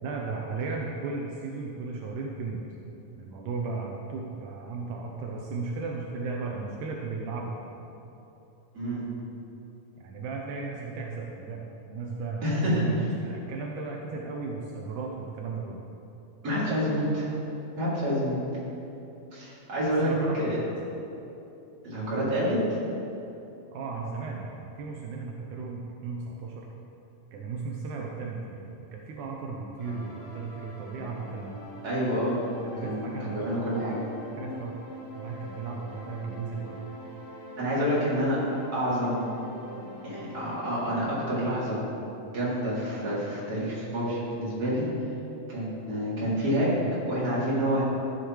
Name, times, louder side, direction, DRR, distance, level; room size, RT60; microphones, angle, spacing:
voice 1, 0.0-2.6 3.2-7.6 10.0-15.8 20.0-20.6 23.7-26.7 27.3-31.6 32.7-33.5 34.4-34.8 35.2-36.8, right 4 dB, 80° right, -1 dB, 2.1 m, -35 dB
voice 2, 12.4-13.1 16.4-17.3 17.8-18.4 19.3-20.6 21.8-22.6 31.8-32.4 32.8-34.0 37.6-38.4 38.7-39.2 40.0-41.8 42.3-44.9 45.5-46.7 47.1-47.8, equal, 30° right, -8 dB, 2.8 m, -28 dB
sound 1, 29.8-41.2, left 1 dB, 60° left, 3.0 m, -43 dB
13.5 x 8.3 x 3.1 m, 2.9 s
omnidirectional pair, 3.7 m